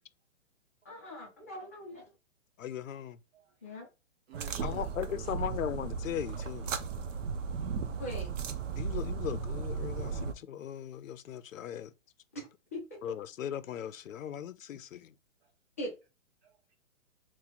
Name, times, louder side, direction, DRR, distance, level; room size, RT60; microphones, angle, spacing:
voice 1, 0.8-2.0 3.6-3.9 8.0-8.3 12.3-13.2 15.8-15.9, equal, 15° left, 0.3 m, -41 dB
voice 2, 2.6-3.2 4.6-6.7 8.8-11.9 13.0-15.1, left 10 dB, 85° left, 0.5 m, -38 dB
voice 3, 4.3-5.5 15.4-15.5 16.4-16.8, right 7 dB, 50° right, 0.9 m, -51 dB
sound 1, 4.3-10.3, right 5 dB, 70° right, 0.6 m, -36 dB
2.9 x 2.1 x 3.9 m
hypercardioid pair, 145°, 39 cm